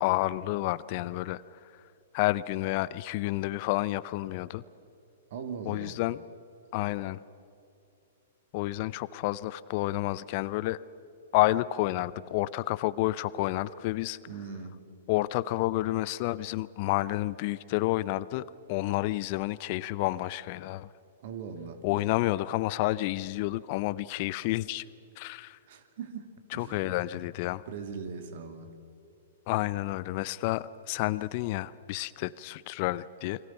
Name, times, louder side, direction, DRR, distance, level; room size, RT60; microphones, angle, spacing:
voice 1, 0.0-1.4 2.1-4.6 5.7-6.2 6.7-7.2 8.5-10.8 11.3-14.2 15.1-20.9 21.8-24.8 25.2-25.6 26.5-27.6 29.5-33.4, left 17 dB, 45° left, 18 dB, 0.6 m, -30 dB
voice 2, 5.3-6.0 14.3-14.8 21.2-21.8 25.7-27.1 27.7-28.7, right 5 dB, 55° right, 8 dB, 2.5 m, -40 dB
29.5 x 23.0 x 5.9 m, 2.6 s
figure-of-eight pair, 110°, 0 cm